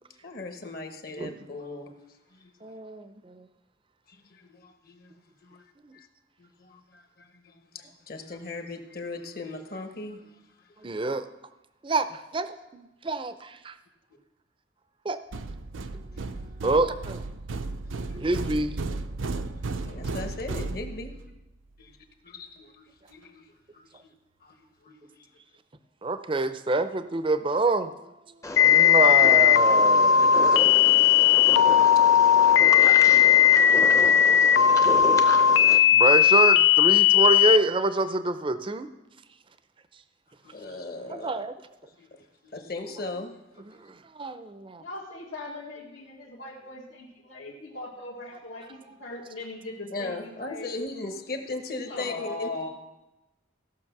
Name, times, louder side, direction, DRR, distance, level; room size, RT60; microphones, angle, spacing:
voice 1, 0.2-1.9 2.4-2.5 4.4-5.1 5.4-5.6 5.9-6.1 6.4-7.0 7.3-10.2 16.3-16.4 19.8-21.1 21.8-21.9 22.2-23.4 23.7-23.9 24.4-24.5 24.9-25.1 33.2-33.5 34.0-34.4 34.8-35.1 40.4-41.3 42.0-42.1 42.5-43.4 49.9-52.5, left 3 dB, 50° left, 6 dB, 1.1 m, -38 dB
voice 2, 2.6-3.4 10.8-11.2 11.8-13.7 15.1-15.2 16.6-17.2 18.1-18.8 26.0-27.9 28.6-30.6 33.1-33.3 35.9-38.9 41.1-41.5 43.7-43.8 44.2-44.8, right 3 dB, 25° right, 11 dB, 0.5 m, -26 dB
sound 1, 15.3-21.3, right 3 dB, 85° right, 0.6 m, -34 dB
sound 2, 28.4-35.8, left 1 dB, 15° left, 0.6 m, -33 dB
sound 3, 28.6-37.6, left 9 dB, 70° left, 0.4 m, -18 dB
voice 3, 44.8-50.7 51.9-52.7, left 2 dB, 85° left, -7 dB, 1.9 m, -39 dB
15.5 x 6.2 x 5.9 m, 0.98 s
head